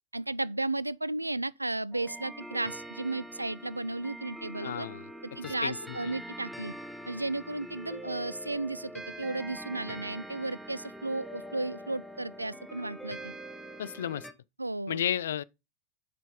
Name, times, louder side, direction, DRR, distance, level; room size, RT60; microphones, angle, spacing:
voice 1, 0.1-4.9 5.4-6.7 7.1-13.3 14.6-15.0, right 2 dB, 85° right, 0.3 m, -34 dB
sound 1, 1.9-14.3, right 1 dB, ahead, 1.0 m, -44 dB
voice 2, 4.6-5.1 5.4-6.1 13.8-14.3 14.9-15.4, left 10 dB, 60° left, 0.4 m, -33 dB
6.7 x 5.2 x 5.0 m
figure-of-eight pair, 90°, 0 cm